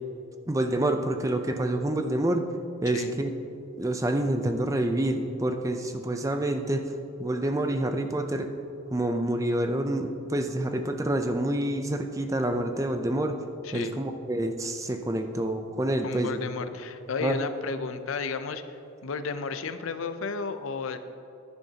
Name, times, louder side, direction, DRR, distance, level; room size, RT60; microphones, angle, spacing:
voice 1, 0.5-2.4 2.8-3.3 3.8-6.9 7.2-8.5 8.9-13.4 13.7-16.4 17.2-17.4, right 1 dB, 15° right, 6 dB, 0.4 m, -27 dB
voice 2, 13.6-13.9 16.0-18.6 19.0-21.0, left 4 dB, 75° left, 10 dB, 0.5 m, -33 dB
10.5 x 10.5 x 2.8 m, 2.7 s
head